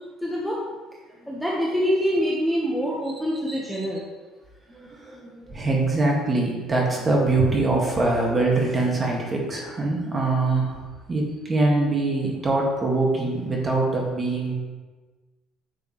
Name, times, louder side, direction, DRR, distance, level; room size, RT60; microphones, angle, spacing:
voice 1, 0.2-0.6 1.3-4.0, equal, ahead, -5 dB, 1.2 m, -25 dB
voice 2, 4.7-10.8 11.1-14.5, right 2 dB, 20° right, -2 dB, 1.9 m, -23 dB
9.8 x 6.9 x 3.2 m, 1.3 s
cardioid pair, 140°, 0 cm